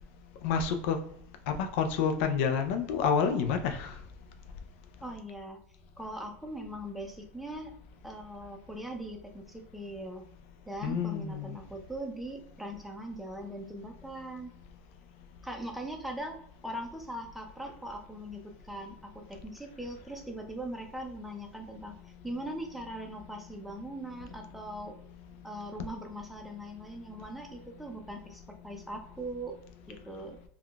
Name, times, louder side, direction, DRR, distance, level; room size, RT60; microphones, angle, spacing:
voice 1, 0.4-1.0 1.5-4.0 10.8-11.6, left 6 dB, 75° left, 7 dB, 0.4 m, -28 dB
voice 2, 5.0-5.6 6.0-7.7 8.0-10.2 10.7-14.5 15.4-16.4 16.6-22.0 22.2-24.9 25.4-29.6 29.9-30.4, right 1 dB, ahead, 2 dB, 0.5 m, -40 dB
3.6 x 2.2 x 2.3 m, 0.70 s
supercardioid pair, 120°, 7 cm